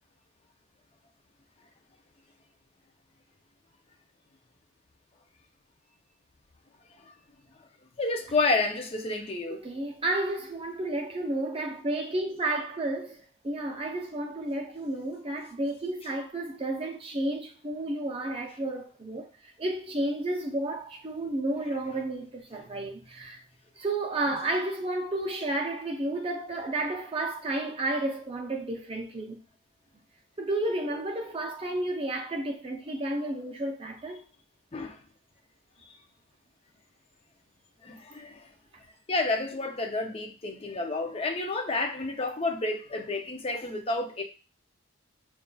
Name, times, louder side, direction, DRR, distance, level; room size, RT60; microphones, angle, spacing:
voice 1, 8.0-9.6 34.7-35.0 37.8-38.5 39.1-44.2, left 3 dB, 25° left, 0.5 m, -30 dB
voice 2, 9.5-19.3 19.6-23.4 23.8-29.4 30.4-34.2, right 2 dB, 25° right, 0.5 m, -32 dB
5.2 x 2.4 x 2.3 m
head